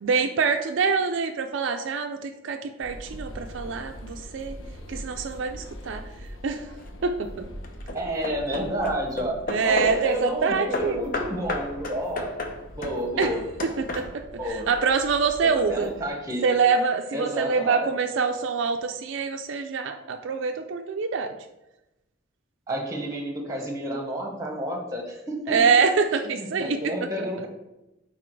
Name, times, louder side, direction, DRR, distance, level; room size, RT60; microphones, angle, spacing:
voice 1, 0.0-4.6 4.9-6.0 6.4-6.7 7.0-7.4 9.5-11.1 13.2-13.3 13.6-14.1 14.4-15.9 16.4-21.3 25.5-26.9 27.2-27.5, right 5 dB, 65° right, 5 dB, 0.4 m, -25 dB
sound 1, 2.8-16.1, equal, 80° left, 0.9 m, -43 dB
Hammer / Wood, 6.5-7.0 7.6-10.1 10.7-14.4, left 2 dB, 45° left, 0.7 m, -33 dB
voice 2, 7.9-9.4 9.6-12.3 12.7-13.4 14.4-14.7 15.4-16.4 17.1-17.9 22.7-25.6 26.4-27.5, equal, 15° right, 1 dB, 1.1 m, -30 dB
6.0 x 4.1 x 4.6 m, 0.95 s
head